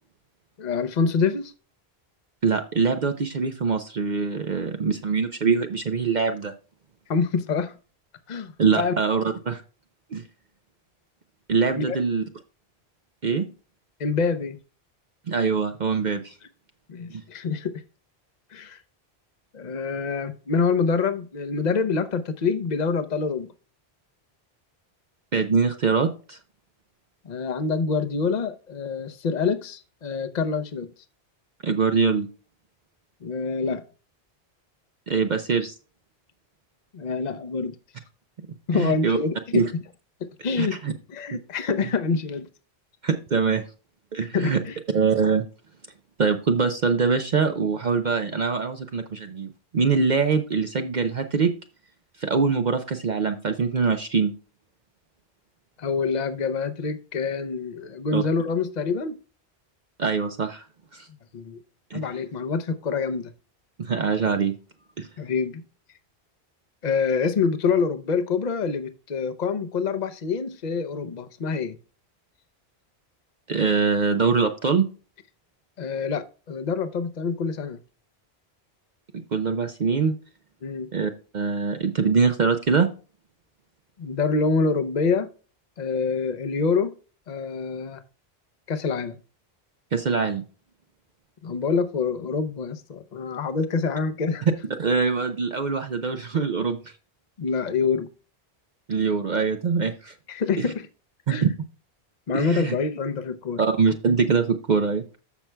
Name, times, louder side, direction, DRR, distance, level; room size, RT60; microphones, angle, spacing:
voice 1, 0.6-1.5 7.1-7.7 8.3-8.9 11.7-12.0 14.0-14.6 16.9-17.7 18.5-18.8 19.5-23.5 27.2-30.9 33.2-33.8 36.9-37.8 38.7-39.7 40.4-40.8 41.1-42.5 44.3-44.8 55.8-59.2 61.3-61.6 61.9-63.3 65.2-65.6 66.8-71.8 75.8-77.8 80.6-80.9 84.0-85.3 85.8-86.9 87.3-88.0 88.7-89.2 91.4-94.5 97.4-98.1 100.3-100.9 101.3-101.4 102.3-103.6, left 5 dB, 45° left, 0.9 m, -26 dB
voice 2, 2.4-6.5 8.6-9.6 10.1-10.2 11.5-12.2 13.2-13.4 15.3-16.4 17.1-17.2 25.3-26.4 31.6-32.3 35.1-35.7 38.7-39.2 39.5-39.7 40.6-40.9 41.3-41.4 43.0-43.6 44.1-44.6 44.9-45.4 46.2-51.5 52.2-54.3 58.1-58.2 60.0-60.6 60.9-61.1 61.9-62.0 63.8-64.5 65.0-65.1 73.5-74.9 79.3-80.1 80.9-82.9 89.9-90.4 94.8-96.9 98.9-100.1 100.6-100.7 101.3-101.5 102.3-102.7 103.6-105.2, right 5 dB, 50° right, 0.7 m, -23 dB
14.0 x 5.9 x 2.2 m
omnidirectional pair, 1.1 m